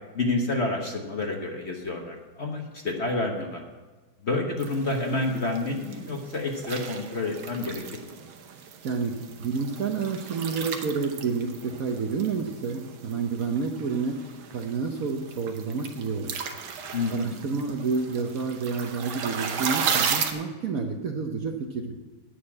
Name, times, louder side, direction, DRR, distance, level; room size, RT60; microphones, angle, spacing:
voice 1, 0.1-3.6 4.2-8.1 16.9-17.4, left 2 dB, 40° left, 1 dB, 1.1 m, -29 dB
sound 1, 4.6-20.3, right 7 dB, 85° right, 1.8 m, -35 dB
voice 2, 8.8-9.1 9.4-14.2 14.5-16.4 16.8-21.9, right 5 dB, 55° right, 3 dB, 1.0 m, -29 dB
9.5 x 6.7 x 8.6 m, 1.3 s
omnidirectional pair, 2.2 m